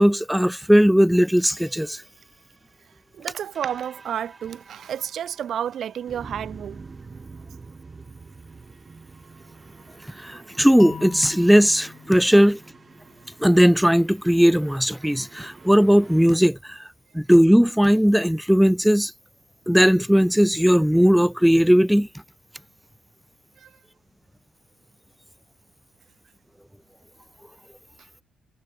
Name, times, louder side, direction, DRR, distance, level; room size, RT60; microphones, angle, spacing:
voice 1, 0.0-2.0 10.2-12.6 13.4-16.8 17.1-19.1 19.7-22.1, equal, ahead, 0.4 m, -17 dB
sound 1, 1.4-16.3, right 4 dB, 25° right, 2.2 m, -47 dB
voice 2, 3.1-6.8 12.3-12.4 23.6-23.7, right 9 dB, 60° right, 0.6 m, -31 dB
sound 2, 10.8-13.7, left 7 dB, 50° left, 6.0 m, -42 dB
cardioid pair, 105°, 0 cm